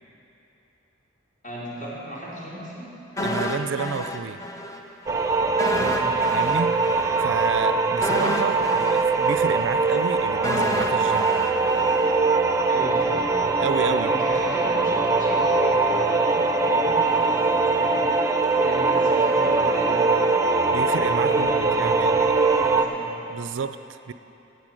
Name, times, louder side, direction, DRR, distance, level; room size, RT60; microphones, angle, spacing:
voice 1, 1.4-2.9 5.7-6.2 12.7-13.3 13.8-18.1 18.6-20.5 21.3-23.1, equal, 40° left, -7 dB, 3.8 m, -37 dB
sound 1, 3.2-4.8 5.1-5.2 5.6-12.7 13.0-13.1, left 1 dB, 15° left, 0.7 m, -30 dB
voice 2, 3.2-4.4 6.3-11.4 13.6-14.1 20.7-22.4 23.3-24.1, right 5 dB, 65° right, 12 dB, 0.4 m, -30 dB
sound 2, 5.1-22.8, right 3 dB, 15° right, 0.7 m, -22 dB
16.5 x 8.0 x 6.3 m, 2.9 s
head